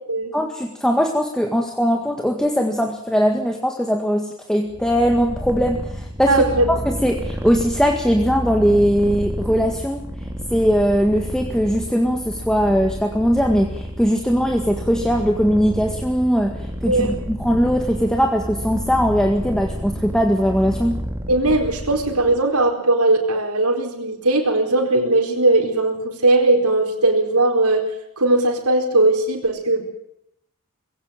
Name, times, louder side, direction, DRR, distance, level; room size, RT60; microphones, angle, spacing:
voice 1, 0.3-6.3 6.9-10.0 10.5-21.0, equal, 5° left, 3 dB, 1.8 m, -20 dB
Purr, 4.7-22.4, equal, 10° right, 2.6 m, -30 dB
voice 2, 6.3-6.7 16.9-17.1 21.3-27.8 28.2-29.8, right 2 dB, 85° right, 2 dB, 4.5 m, -18 dB
21.0 x 17.0 x 8.9 m, 0.79 s
head